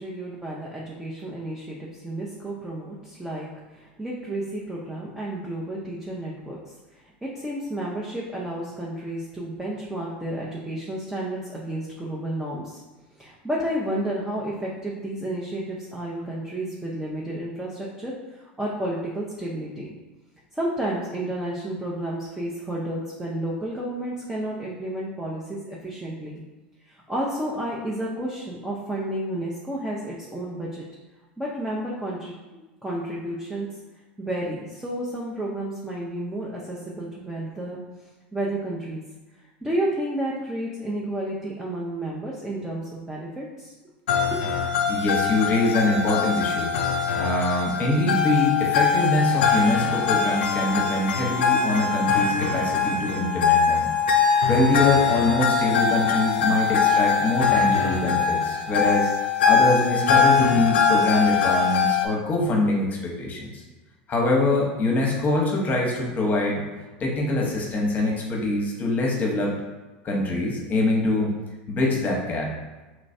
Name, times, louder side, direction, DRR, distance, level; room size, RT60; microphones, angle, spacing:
voice 1, 0.0-6.7 7.2-12.8 13.2-19.9 20.5-26.4 27.1-30.8 31.4-33.7 34.2-37.8 38.3-39.0 39.6-43.7 44.3-44.7, right 1 dB, 10° right, -5 dB, 0.6 m, -31 dB
sound 1, 44.1-62.0, left 6 dB, 80° left, 0.4 m, -22 dB
voice 2, 44.9-46.7 47.1-53.9 54.5-59.1 59.5-63.5 64.1-66.6 67.0-69.5 70.0-71.3 71.7-72.5, left 2 dB, 30° left, -1 dB, 0.9 m, -24 dB
3.1 x 3.1 x 2.7 m, 1.2 s
hypercardioid pair, 90°, 5 cm